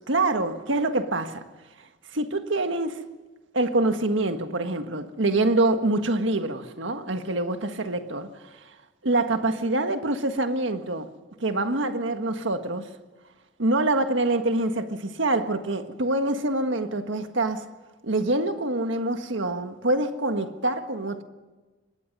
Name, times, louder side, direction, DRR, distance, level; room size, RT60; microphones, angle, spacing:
voice 1, 0.1-1.4 2.1-3.0 3.5-8.3 9.0-11.1 11.4-12.9 13.6-17.7 18.0-21.2, right 2 dB, 75° right, 1.6 m, -25 dB
25.0 x 20.5 x 5.5 m
head